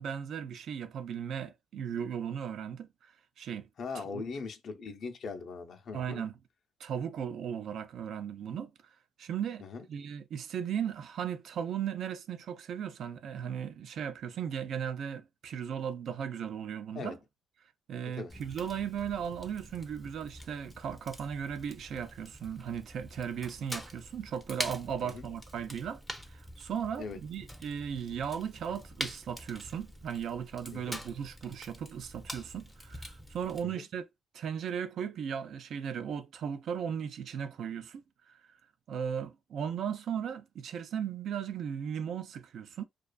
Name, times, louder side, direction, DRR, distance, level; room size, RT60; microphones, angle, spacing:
voice 1, 0.0-2.9 3.4-3.7 3.9-4.2 5.9-6.3 6.8-8.7 9.2-17.2 17.9-26.0 26.3-34.0 34.3-38.4 38.9-42.8, right 8 dB, 70° right, 0.3 m, -37 dB
voice 2, 3.8-6.2 9.6-9.9 16.9-17.2 18.1-18.3 25.0-25.3 27.0-27.2 30.7-31.0 33.6-33.8, left 4 dB, 60° left, 0.5 m, -40 dB
Fire, 18.3-33.6, equal, ahead, 0.5 m, -45 dB
2.4 x 2.3 x 2.2 m
cardioid pair, 90°, 0 cm